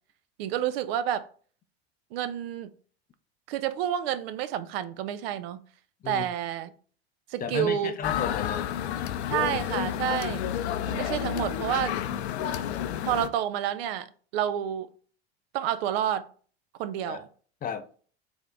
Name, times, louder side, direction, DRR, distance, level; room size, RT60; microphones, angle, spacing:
voice 1, 0.4-1.3 2.1-2.7 3.5-5.6 6.1-6.7 7.3-8.0 9.3-10.4 10.9-11.9 13.0-14.9 15.5-16.3 16.8-17.3, right 10 dB, 65° right, 0.5 m, -29 dB
voice 2, 7.4-8.7 17.1-17.2 17.6-18.0, left 7 dB, 25° left, 0.5 m, -33 dB
sound 1, 8.0-13.3, left 10 dB, 80° left, 0.5 m, -30 dB
3.5 x 3.5 x 3.6 m
hypercardioid pair, 80°, 32 cm